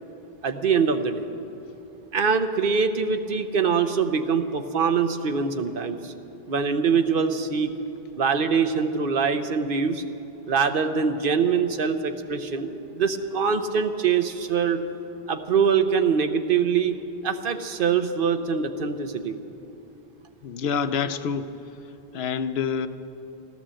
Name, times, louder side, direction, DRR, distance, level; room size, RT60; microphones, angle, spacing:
voice 1, 0.4-1.2 2.1-6.1 6.5-7.7 8.2-10.0 10.5-14.8 15.3-19.4, right 6 dB, 60° right, 8 dB, 1.0 m, -23 dB
voice 2, 20.4-21.5 22.1-22.9, left 6 dB, 85° left, 12 dB, 0.9 m, -27 dB
13.5 x 12.5 x 7.5 m, 2.8 s
omnidirectional pair, 1.0 m